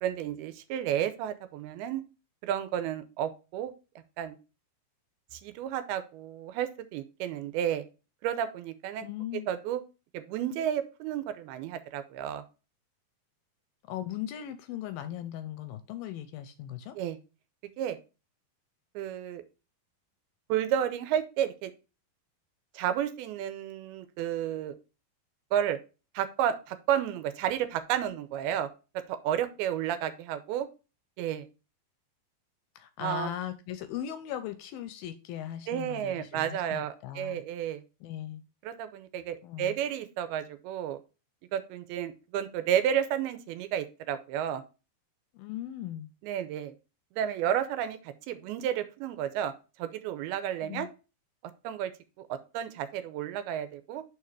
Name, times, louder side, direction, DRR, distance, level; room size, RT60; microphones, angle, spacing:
voice 1, 0.0-2.0 2.4-3.7 4.2-4.4 5.3-7.9 8.2-9.1 9.5-9.8 10.1-12.4 17.0-17.2 17.8-18.0 19.0-19.4 20.5-21.7 22.7-24.8 25.5-25.8 26.1-28.7 29.1-30.7 31.2-31.5 33.0-33.3 35.7-37.8 38.6-41.0 41.5-44.6 46.2-46.7 47.1-49.5 49.8-50.9 51.6-51.9 52.3-54.0, right 10 dB, 85° right, 11 dB, 2.5 m, -31 dB
voice 2, 9.0-9.5 13.9-17.0 32.8-37.4 38.0-38.4 39.4-39.8 45.3-46.1 50.6-50.9, left 11 dB, 80° left, 10 dB, 2.2 m, -38 dB
5.6 x 5.0 x 4.6 m, 0.31 s
omnidirectional pair, 4.5 m